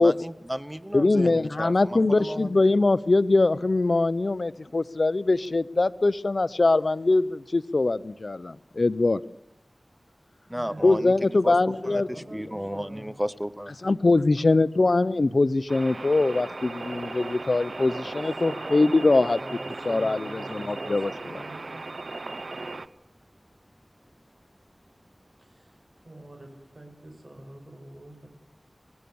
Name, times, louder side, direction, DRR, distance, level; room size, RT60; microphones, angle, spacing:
voice 1, 0.0-2.5 10.5-11.6 11.9-13.9, equal, 10° right, 14 dB, 0.9 m, -33 dB
voice 2, 0.9-9.2 10.8-12.1 13.8-19.4 19.8-21.4, left 2 dB, 65° left, 16 dB, 0.7 m, -22 dB
voice 3, 10.5-13.1 14.2-14.9 18.4-21.7 25.4-25.7 26.0-28.3, right 1 dB, 55° right, 3 dB, 6.4 m, -45 dB
sound 1, 15.7-22.9, right 3 dB, 75° right, 0.8 m, -37 dB
26.5 x 18.0 x 7.0 m, 0.87 s
wide cardioid pair, 65°, 0 cm